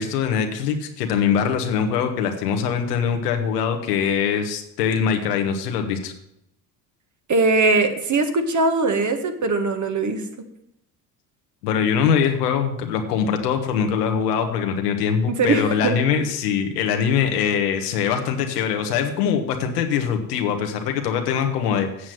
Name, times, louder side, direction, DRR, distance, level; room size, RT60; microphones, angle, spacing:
voice 1, 0.0-6.1 11.6-22.1, left 7 dB, 90° left, 5 dB, 1.4 m, -23 dB
voice 2, 7.3-10.2 15.3-16.0, right 3 dB, 40° right, 6 dB, 1.7 m, -21 dB
8.2 x 7.6 x 7.6 m, 0.79 s
hypercardioid pair, 65°, 46 cm